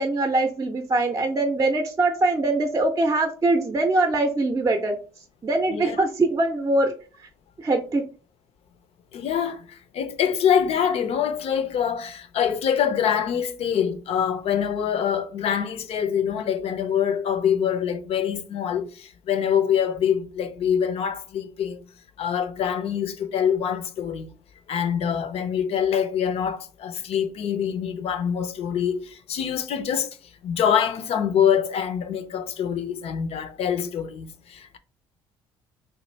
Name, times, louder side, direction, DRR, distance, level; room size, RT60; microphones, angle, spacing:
voice 1, 0.0-5.0 5.4-6.9 7.6-8.0, right 2 dB, 25° right, 0.6 m, -22 dB
voice 2, 9.1-21.8 22.2-24.3 24.7-30.1 30.4-34.8, left 8 dB, 55° left, 0.5 m, -25 dB
3.0 x 2.4 x 3.2 m
hypercardioid pair, 55°, 12 cm